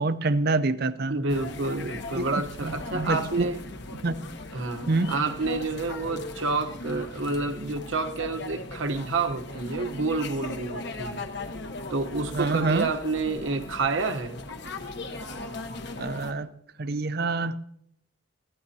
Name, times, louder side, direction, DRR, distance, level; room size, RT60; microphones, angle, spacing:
voice 1, 0.0-1.2 2.2-3.5 4.0-4.2 4.9-5.1 12.3-12.9 16.0-16.5 16.8-17.6, right 3 dB, 50° right, 13 dB, 0.6 m, -26 dB
voice 2, 1.1-3.6 4.5-11.3 11.9-14.4, right 3 dB, 70° right, 7 dB, 1.1 m, -29 dB
sound 1, 1.3-16.3, left 2 dB, 55° left, 1.2 m, -38 dB
22.0 x 15.5 x 2.8 m, 0.73 s
head